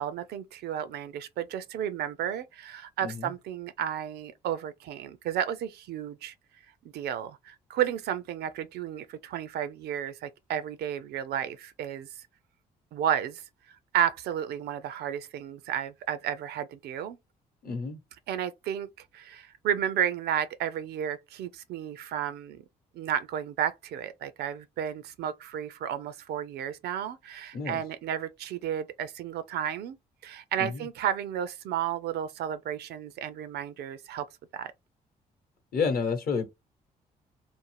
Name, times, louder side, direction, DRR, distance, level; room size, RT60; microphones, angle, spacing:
voice 1, 0.0-6.3 6.9-12.1 12.9-13.4 13.7-17.2 18.3-18.9 19.1-22.6 22.9-30.0 30.2-34.3 34.5-34.7, right 9 dB, 55° right, 0.4 m, -32 dB
voice 2, 17.6-18.0 27.5-27.8 30.6-30.8 35.7-36.5, left 5 dB, 50° left, 0.9 m, -30 dB
2.5 x 2.0 x 3.2 m
hypercardioid pair, 45°, 20 cm